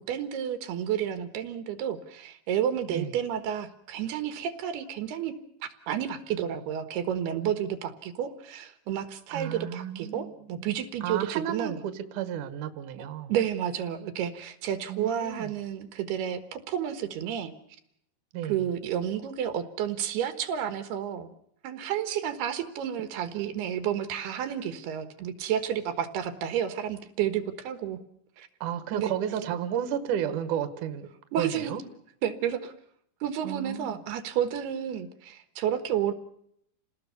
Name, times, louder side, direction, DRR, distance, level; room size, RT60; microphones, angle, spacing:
voice 1, 0.0-5.4 5.6-11.8 13.3-17.5 18.5-21.3 21.6-28.0 28.4-28.5 28.9-29.1 31.3-31.7 32.2-32.7 33.2-36.1, right 9 dB, 75° right, 10 dB, 3.3 m, -31 dB
voice 2, 9.3-10.7 11.0-13.3 14.9-15.5 18.3-18.7 28.6-31.1 31.4-31.8 33.4-34.0, right 9 dB, 60° right, 10 dB, 2.8 m, -32 dB
29.0 x 19.0 x 7.0 m, 0.72 s
omnidirectional pair, 4.7 m